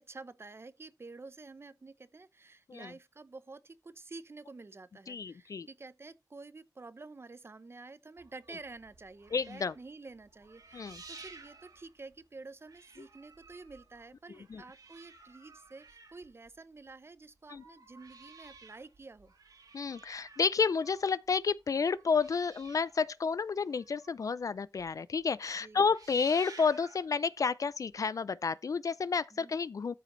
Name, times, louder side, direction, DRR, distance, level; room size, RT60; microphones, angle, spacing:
voice 1, 0.0-19.3 25.6-25.9 29.3-29.5, right 3 dB, 35° right, 0.7 m, -50 dB
voice 2, 5.1-5.7 9.3-9.7 10.7-11.0 14.5-14.6 17.5-17.6 19.7-29.9, left 5 dB, 55° left, 0.4 m, -31 dB
sound 1, 8.2-12.4 12.6-16.9 17.3-24.4 24.8-24.9 25.2-25.5 25.8-27.1 27.9-28.0, right 4 dB, 65° right, 2.1 m, -55 dB
13.5 x 5.0 x 3.1 m
wide cardioid pair, 85°, 7 cm